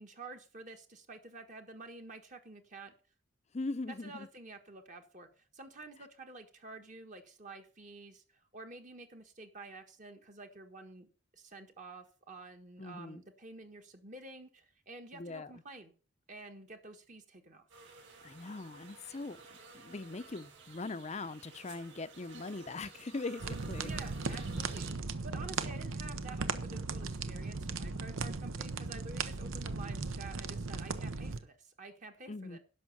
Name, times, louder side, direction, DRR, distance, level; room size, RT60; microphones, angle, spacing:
voice 1, 0.0-2.9 3.9-15.9 16.3-17.7 23.8-24.9 25.2-32.6, right 3 dB, 35° right, 1.4 m, -50 dB
voice 2, 3.5-4.3 12.8-13.2 15.1-15.5 18.2-19.4 19.7-23.9 24.3-24.5 32.3-32.6, left 3 dB, 35° left, 0.6 m, -41 dB
sound 1, 17.7-24.9, right 4 dB, 65° right, 5.5 m, -54 dB
sound 2, 23.4-31.4, right 4 dB, 80° right, 0.9 m, -37 dB
11.0 x 6.2 x 7.0 m
head